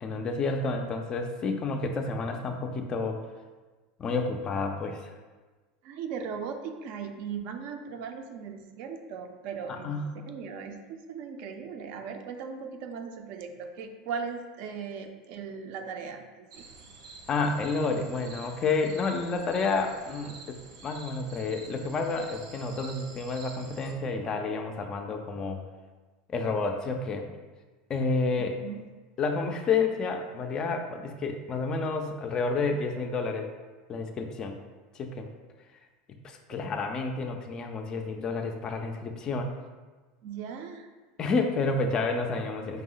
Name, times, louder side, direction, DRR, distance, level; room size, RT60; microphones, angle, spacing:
voice 1, 0.0-3.2 4.0-5.1 9.7-10.1 17.3-25.6 26.3-27.3 27.9-28.6 29.2-33.5 33.9-34.6 34.9-35.3 36.1-39.5 41.2-42.8, left 4 dB, 25° left, 4 dB, 0.3 m, -30 dB
voice 2, 5.8-10.0 10.3-16.6 28.6-28.8 40.2-40.9, right 6 dB, 50° right, 6 dB, 0.4 m, -38 dB
sound 1, 16.5-23.9, right 4 dB, 85° right, 0.7 m, -48 dB
5.3 x 2.0 x 3.8 m, 1.3 s
supercardioid pair, 155°, 3 cm